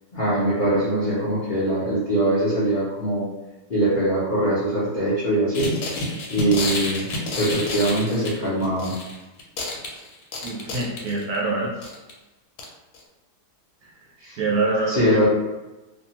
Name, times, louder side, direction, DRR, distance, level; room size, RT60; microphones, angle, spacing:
voice 1, 0.1-3.3 3.7-5.7 6.3-7.1 7.4-8.9 14.2-14.4 14.9-15.3, right 1 dB, 55° left, -10 dB, 0.5 m, -22 dB
sound 1, 5.5-9.1 9.4-11.4 11.8-12.1 12.6-12.7 12.9-13.0, left 2 dB, 75° left, 1.1 m, -29 dB
voice 2, 10.4-11.7 13.8-13.9 14.4-15.3, right 3 dB, 70° right, -3 dB, 0.8 m, -25 dB
2.6 x 2.3 x 2.8 m, 1.1 s
omnidirectional pair, 1.8 m